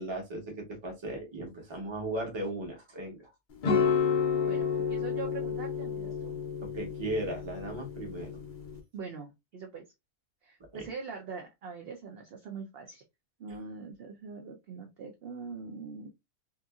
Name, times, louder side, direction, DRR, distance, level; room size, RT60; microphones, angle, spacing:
voice 1, 0.0-3.3 6.6-8.4 10.7-10.9, right 1 dB, 25° right, 0.8 m, -37 dB
sound 1, 3.6-8.8, left 6 dB, 50° left, 0.6 m, -30 dB
voice 2, 4.4-6.4 8.9-9.8 10.4-13.0 13.4-16.1, right 5 dB, 60° right, 0.6 m, -43 dB
2.8 x 2.5 x 2.3 m
omnidirectional pair, 1.5 m